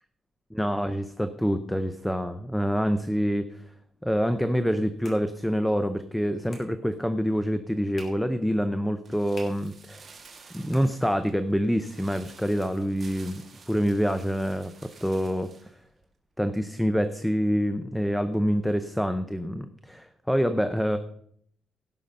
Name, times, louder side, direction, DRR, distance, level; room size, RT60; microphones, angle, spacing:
voice 1, 0.5-3.6 4.0-10.0 10.5-15.5 16.4-21.0, equal, ahead, 10 dB, 0.5 m, -26 dB
sound 1, 4.5-11.5, left 2 dB, 35° left, 2.6 m, -54 dB
sound 2, 9.0-15.7 16.0-16.1, right 4 dB, 30° right, 1.9 m, -52 dB
17.0 x 5.6 x 5.3 m, 0.69 s
cardioid pair, 170°, 0 cm